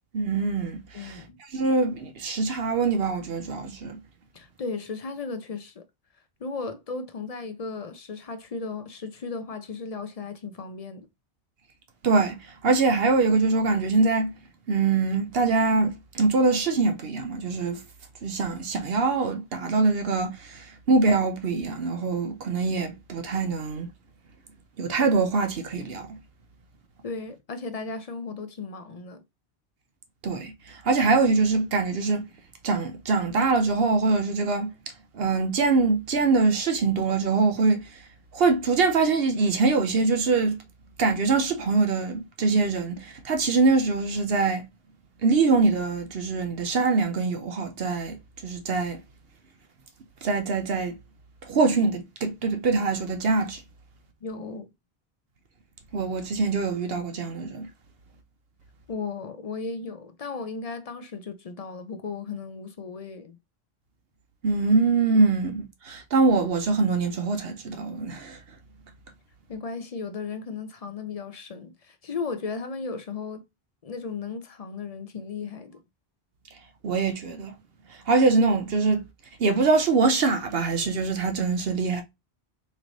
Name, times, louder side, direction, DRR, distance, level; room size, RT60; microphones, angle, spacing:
voice 1, 0.1-1.2 1.5-4.0 12.0-12.4 12.6-14.3 14.7-17.8 18.2-23.9 24.8-26.2 30.2-30.5 30.8-32.3 32.6-34.7 35.1-37.9 38.3-40.6 41.0-44.6 45.2-48.2 48.4-49.0 50.2-51.0 51.5-53.6 55.9-57.7 64.4-68.4 76.8-77.5 78.1-79.0 79.4-82.0, right 4 dB, 70° right, 1.0 m, -23 dB
voice 2, 0.9-1.4 4.3-5.8 6.4-11.1 27.0-29.2 54.2-54.7 58.9-63.4 69.5-73.5 73.8-75.8, left 4 dB, 45° left, 0.6 m, -35 dB
3.2 x 3.2 x 3.9 m
omnidirectional pair, 1.0 m